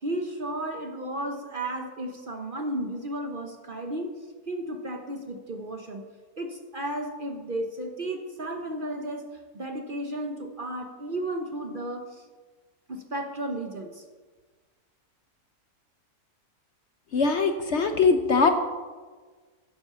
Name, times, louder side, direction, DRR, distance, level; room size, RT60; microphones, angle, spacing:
voice 1, 0.0-4.1 4.5-6.0 6.4-12.2 12.9-14.0, right 1 dB, 40° right, 4 dB, 0.9 m, -33 dB
voice 2, 17.1-18.5, left 4 dB, 55° left, 7 dB, 0.9 m, -21 dB
10.5 x 7.9 x 6.8 m, 1.4 s
omnidirectional pair, 1.6 m